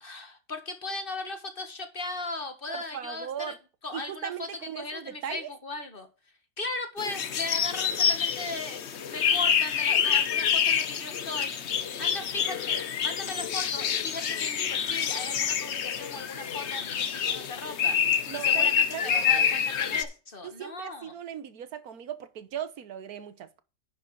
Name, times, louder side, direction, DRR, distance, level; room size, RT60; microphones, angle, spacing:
voice 1, 0.0-3.5 3.8-4.5 4.7-6.1 6.6-21.1, left 2 dB, 30° left, 1.5 m, -37 dB
voice 2, 2.7-3.6 3.9-5.5 18.3-19.4 20.4-23.6, right 9 dB, 55° right, 1.4 m, -38 dB
sound 1, 7.0-20.0, left 8 dB, 50° left, 0.8 m, -27 dB
10.5 x 5.1 x 4.7 m
omnidirectional pair, 2.0 m